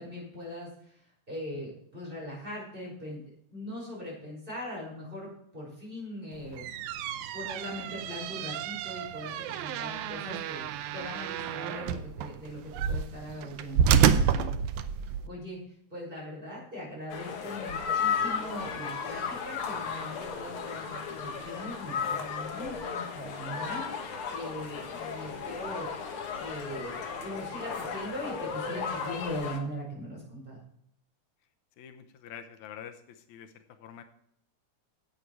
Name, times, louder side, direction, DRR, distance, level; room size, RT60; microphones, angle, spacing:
voice 1, 0.0-3.2 3.5-6.7 7.3-10.7 10.9-14.5 15.2-15.6 15.9-23.9 24.3-25.9 26.4-30.6, equal, 15° right, -4 dB, 5.3 m, -40 dB
sound 1, 6.4-15.3, right 8 dB, 80° right, 2.0 m, -29 dB
sound 2, 17.1-29.6, left 6 dB, 55° left, 1.9 m, -35 dB
voice 2, 31.8-34.0, left 9 dB, 85° left, 7 dB, 2.2 m, -46 dB
11.0 x 8.4 x 4.7 m, 0.69 s
omnidirectional pair, 3.3 m